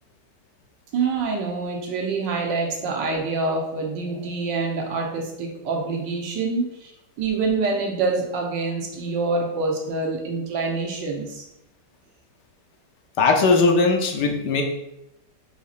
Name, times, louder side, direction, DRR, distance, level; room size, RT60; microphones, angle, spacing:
voice 1, 0.9-6.9 7.2-11.5, right 3 dB, 85° right, 1 dB, 1.6 m, -26 dB
voice 2, 13.2-14.6, left 3 dB, 75° left, 2 dB, 1.3 m, -19 dB
5.0 x 4.3 x 2.4 m, 0.86 s
omnidirectional pair, 1.9 m